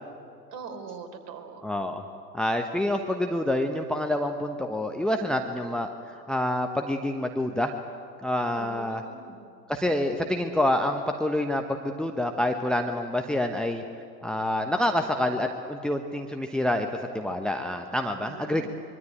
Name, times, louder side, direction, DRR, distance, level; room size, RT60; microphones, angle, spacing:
voice 1, 0.5-1.6 8.5-9.4 18.2-18.7, right 5 dB, 40° right, 6 dB, 3.9 m, -42 dB
voice 2, 1.6-2.0 2.3-7.7 8.2-9.0 9.7-13.8 14.2-16.9 17.1-18.7, left 1 dB, ahead, 5 dB, 1.1 m, -27 dB
24.5 x 23.5 x 9.1 m, 2.4 s
figure-of-eight pair, 90°, 49 cm